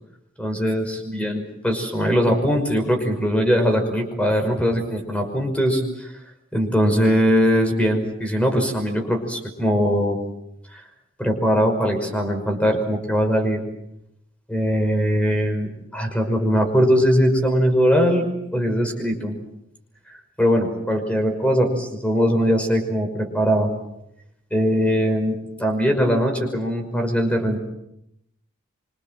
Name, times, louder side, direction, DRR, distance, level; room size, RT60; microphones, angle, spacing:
voice 1, 0.4-6.1 6.5-10.2 10.7-10.8 11.2-13.6 14.5-19.4 20.4-23.7 24.5-27.6, equal, 5° left, 4 dB, 5.7 m, -21 dB
26.0 x 26.0 x 7.7 m, 0.80 s
head